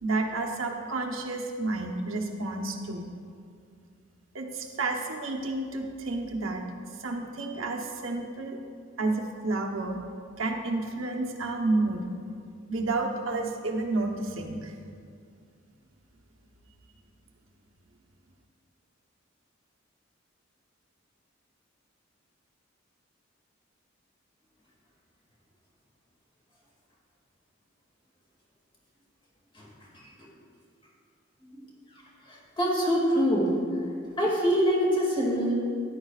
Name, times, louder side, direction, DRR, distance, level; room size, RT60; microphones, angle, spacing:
voice 1, 0.0-3.0 4.3-6.7 7.0-8.6 9.0-10.0 10.4-12.1 12.7-14.7, right 2 dB, 90° right, 2 dB, 1.1 m, -30 dB
voice 2, 29.9-30.3 31.4-31.6 32.3-33.5 34.2-35.5, equal, 25° left, -3 dB, 2.3 m, -25 dB
13.5 x 10.5 x 2.4 m, 2.2 s
head